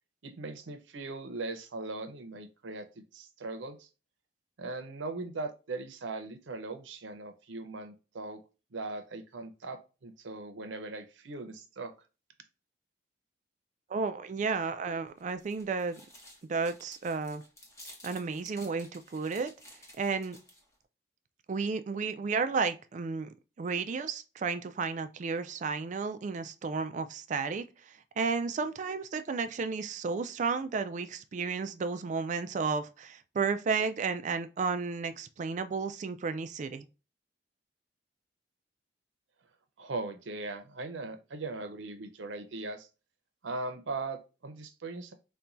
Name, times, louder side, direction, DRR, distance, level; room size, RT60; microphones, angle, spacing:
voice 1, 0.2-3.9 4.6-8.4 8.7-11.9 39.8-42.9 43.4-45.1, right 3 dB, 90° right, 0.6 m, -39 dB
voice 2, 13.9-16.0 16.5-17.4 18.0-19.5 20.0-20.4 21.5-36.9, right 4 dB, 40° right, 0.3 m, -33 dB
sound 1, 15.1-20.7, left 1 dB, 15° left, 0.8 m, -53 dB
4.3 x 2.2 x 2.5 m
head